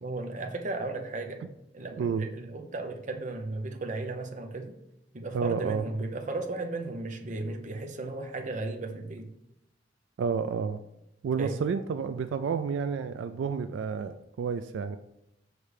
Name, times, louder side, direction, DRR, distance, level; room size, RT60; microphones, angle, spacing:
voice 1, 0.0-1.4 1.7-4.7 5.1-9.3 11.4-11.7, right 2 dB, 40° right, 4 dB, 0.7 m, -35 dB
voice 2, 2.0-2.3 5.3-5.8 10.2-10.8 11.2-15.0, right 6 dB, 80° right, 10 dB, 0.3 m, -30 dB
6.4 x 3.2 x 5.0 m, 0.84 s
head